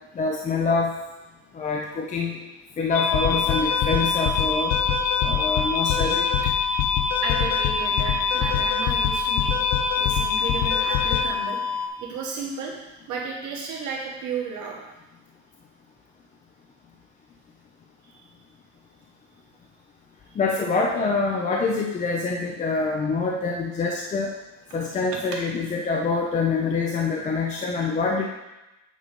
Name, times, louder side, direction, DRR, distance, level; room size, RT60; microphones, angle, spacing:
voice 1, 0.1-0.9 1.5-2.4 2.8-4.8 5.2-6.3 20.4-24.3 24.7-28.3, left 4 dB, 25° left, 0 dB, 0.5 m, -25 dB
sound 1, 2.9-11.9, left 6 dB, 80° left, 0.8 m, -23 dB
voice 2, 7.2-9.5 10.0-12.7 13.1-14.8 18.0-18.2 20.3-20.4, right 4 dB, 75° right, -2 dB, 1.7 m, -33 dB
8.3 x 3.9 x 5.2 m, 1.0 s
cardioid pair, 175°, 29 cm